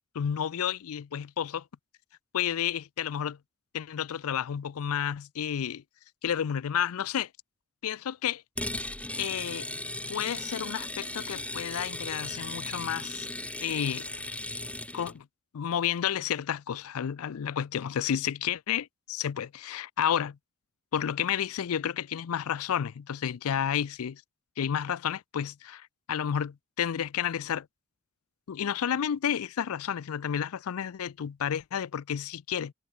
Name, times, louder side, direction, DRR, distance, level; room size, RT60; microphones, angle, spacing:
voice 1, 0.1-1.6 2.3-3.4 3.7-5.8 6.2-7.3 7.8-8.4 9.2-9.7 10.1-13.3 13.6-14.1 14.9-15.3 15.5-20.4 20.9-24.2 24.6-27.7 28.5-32.7, left 9 dB, 70° left, 0.4 m, -31 dB
sound 1, 8.6-15.2, left 2 dB, 5° left, 1.2 m, -37 dB
head